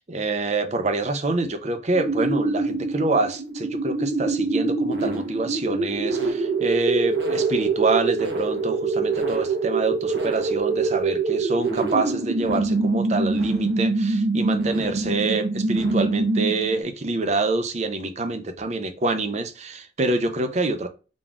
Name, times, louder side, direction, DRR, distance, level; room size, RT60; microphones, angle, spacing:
voice 1, 0.0-20.9, right 3 dB, 40° right, 0.6 m, -26 dB
sound 1, 1.9-16.8, right 3 dB, 80° right, 1.0 m, -24 dB
4.0 x 3.5 x 2.3 m
head